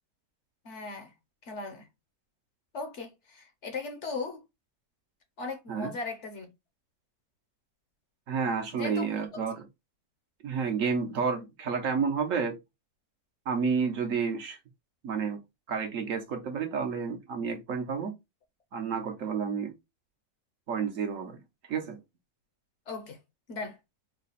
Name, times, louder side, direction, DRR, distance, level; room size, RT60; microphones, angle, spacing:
voice 1, 0.6-1.1 1.4-1.9 2.7-4.4 5.4-6.5 8.8-9.2 22.9-23.2 23.5-23.8, left 3 dB, 55° left, 1.0 m, -37 dB
voice 2, 8.3-9.7 10.4-12.6 13.5-14.6 15.0-15.4 15.7-18.2 18.7-19.7 20.7-21.4 21.7-22.0, right 5 dB, 60° right, 1.2 m, -30 dB
4.1 x 2.3 x 4.0 m
omnidirectional pair, 1.6 m